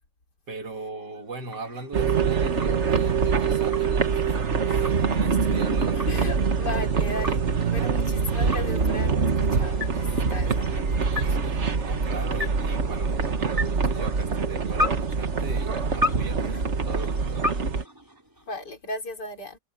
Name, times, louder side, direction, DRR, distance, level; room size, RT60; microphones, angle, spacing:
voice 1, 0.5-4.3 4.6-6.2 11.7-17.5, right 3 dB, 80° right, 3.0 m, -39 dB
sound 1, 0.9-18.7, left 2 dB, 10° right, 5.0 m, -36 dB
sound 2, 1.9-17.8, right 5 dB, 45° right, 1.7 m, -24 dB
voice 2, 4.3-4.8 6.1-7.4 7.7-11.4 18.5-19.6, left 2 dB, 80° left, 4.9 m, -36 dB
omnidirectional pair, 1.8 m